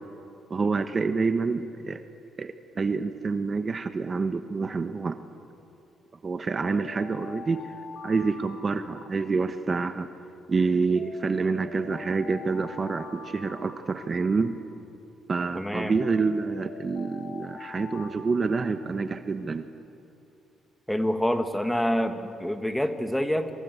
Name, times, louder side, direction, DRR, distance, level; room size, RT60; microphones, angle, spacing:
voice 1, 0.5-2.0 2.4-5.2 6.2-7.6 8.0-10.1 10.5-14.5 15.3-19.7, right 4 dB, 35° right, 9 dB, 1.1 m, -27 dB
Alarm, 6.5-9.8 11.0-14.8 16.0-19.2, left 4 dB, 85° left, 4.7 m, -45 dB
voice 2, 15.5-16.0 20.9-23.5, equal, 5° left, 7 dB, 1.9 m, -27 dB
26.5 x 26.0 x 8.1 m, 2.7 s
cardioid pair, 90°, 0 cm